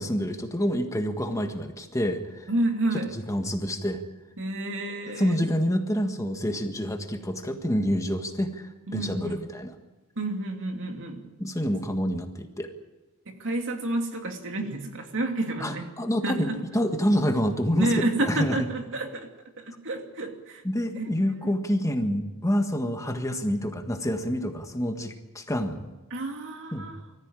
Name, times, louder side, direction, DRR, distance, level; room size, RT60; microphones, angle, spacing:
voice 1, 0.0-2.5 3.1-4.0 5.2-9.7 11.4-12.7 15.6-17.9 18.3-18.6 20.6-25.9 26.7-26.9, equal, 15° left, 5 dB, 1.6 m, -27 dB
voice 2, 2.5-3.1 4.4-5.4 8.9-9.4 10.2-11.3 13.3-15.9 16.2-16.6 17.8-19.3 19.6-20.6 20.9-21.1 26.1-27.0, right 2 dB, 60° right, 4 dB, 2.8 m, -30 dB
24.0 x 14.5 x 9.1 m, 1.1 s
head